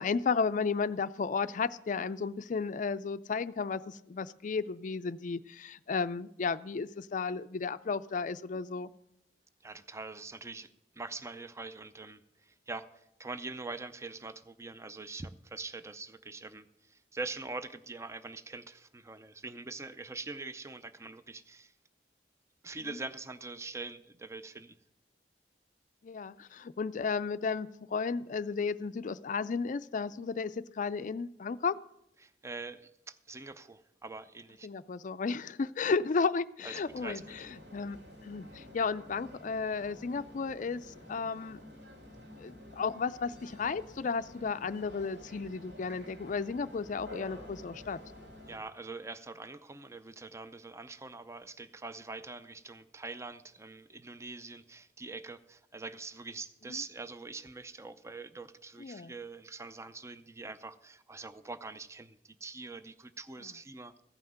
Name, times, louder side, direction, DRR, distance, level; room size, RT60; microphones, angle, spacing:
voice 1, 0.0-8.9 26.0-31.8 34.6-38.0 38.2-41.6 42.4-48.0 56.7-56.8 58.8-59.1, left 5 dB, 45° left, 13 dB, 0.4 m, -33 dB
voice 2, 9.6-21.7 22.6-24.8 32.2-34.7 36.6-37.4 48.5-64.0, right 3 dB, 15° right, 12 dB, 0.4 m, -44 dB
sound 1, 36.8-48.6, left 1 dB, 70° right, 2.9 m, -50 dB
15.0 x 5.7 x 7.7 m, 0.82 s
head